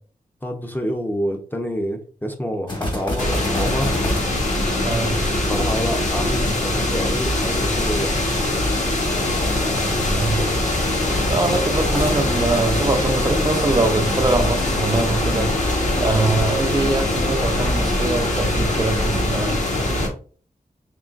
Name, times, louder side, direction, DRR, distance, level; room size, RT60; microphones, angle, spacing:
voice 1, 0.4-3.9 5.5-8.2, equal, 10° left, 0.6 m, -27 dB
sound 1, 2.7-6.1 11.8-13.9, left 1 dB, 30° left, 1.3 m, -30 dB
sound 2, 3.2-20.1, left 1 dB, 50° left, 1.3 m, -22 dB
voice 2, 4.8-5.2 9.6-10.5 11.3-15.5 16.0-19.6, right 3 dB, 25° right, 0.5 m, -23 dB
3.8 x 3.7 x 2.4 m
wide cardioid pair, 90°, 16 cm